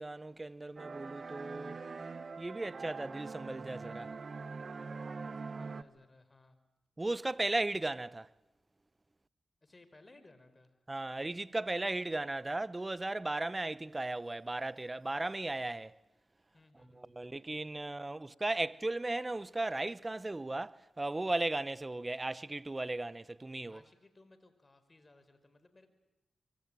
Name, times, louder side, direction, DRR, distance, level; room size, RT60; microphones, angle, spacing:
voice 1, 0.0-1.8 2.4-4.1 7.0-8.3 10.9-16.0 16.9-23.8, right 2 dB, 30° right, 0.9 m, -36 dB
sound 1, 0.8-5.8, right 4 dB, 60° right, 1.3 m, -43 dB
voice 2, 5.2-6.6 9.6-10.7 16.5-17.7 23.7-25.9, left 2 dB, 35° left, 5.0 m, -62 dB
25.5 x 24.0 x 9.0 m
supercardioid pair, 45°, 0 cm